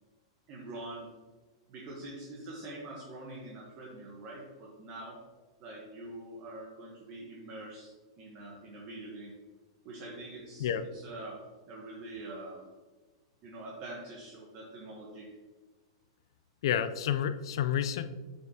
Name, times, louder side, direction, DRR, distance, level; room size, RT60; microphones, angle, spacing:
voice 1, 0.5-1.1 1.7-5.3 5.6-9.4 9.8-12.7 13.4-15.4, right 2 dB, 40° right, -2 dB, 1.1 m, -45 dB
voice 2, 16.6-18.0, left 9 dB, 70° left, 11 dB, 0.4 m, -29 dB
7.8 x 5.3 x 2.8 m, 1.3 s
hypercardioid pair, 140°, 3 cm